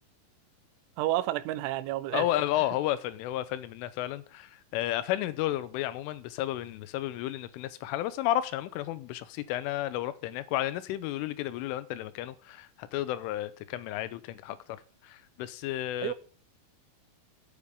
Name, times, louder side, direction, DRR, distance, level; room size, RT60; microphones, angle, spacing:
voice 1, 1.0-2.3 16.0-16.1, right 15 dB, 80° right, 3.3 m, -30 dB
voice 2, 2.1-16.1, left 14 dB, 85° left, 3.4 m, -32 dB
9.3 x 8.6 x 9.7 m
omnidirectional pair, 5.6 m